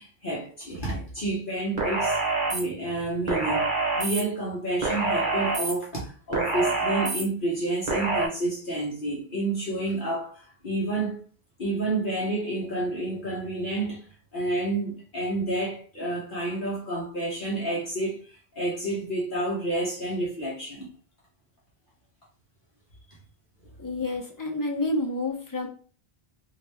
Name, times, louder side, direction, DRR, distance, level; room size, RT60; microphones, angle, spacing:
voice 1, 0.0-2.2 2.5-11.2 11.6-14.0 14.3-20.9, right 2 dB, 55° left, 1.2 m, -29 dB
sound 1, 1.8-2.6 3.3-4.2 4.8-5.7 6.3-7.2 7.9-8.3, right 3 dB, 50° right, 1.2 m, -26 dB
voice 2, 23.8-25.7, left 2 dB, 30° left, 0.4 m, -29 dB
3.1 x 2.8 x 3.3 m
omnidirectional pair, 1.1 m